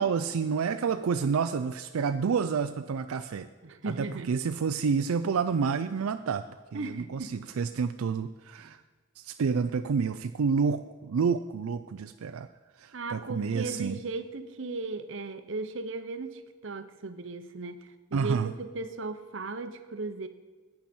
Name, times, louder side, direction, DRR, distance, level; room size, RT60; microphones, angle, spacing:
voice 1, 0.0-3.5 3.9-6.4 6.7-8.8 9.2-12.5 12.8-14.0 18.1-18.5, right 5 dB, 85° right, 9 dB, 0.4 m, -29 dB
voice 2, 3.6-4.3 6.7-7.4 8.6-8.7 12.9-20.3, right 3 dB, 60° right, 10 dB, 0.8 m, -37 dB
11.5 x 8.7 x 4.4 m, 1.4 s
head